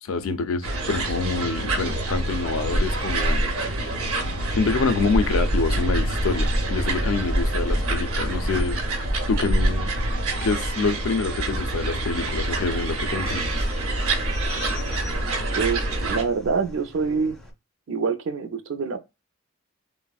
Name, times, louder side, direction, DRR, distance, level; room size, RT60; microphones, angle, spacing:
voice 1, 0.0-3.5 3.8-3.9 4.6-8.8 9.3-9.9 10.4-13.6, left 4 dB, 75° left, 0.4 m, -26 dB
sound 1, 0.6-16.2, right 2 dB, 85° right, 0.7 m, -26 dB
sound 2, 1.8-17.5, equal, ahead, 0.4 m, -32 dB
voice 2, 15.5-17.4 17.9-19.0, right 5 dB, 60° right, 0.4 m, -26 dB
3.3 x 2.0 x 2.3 m
head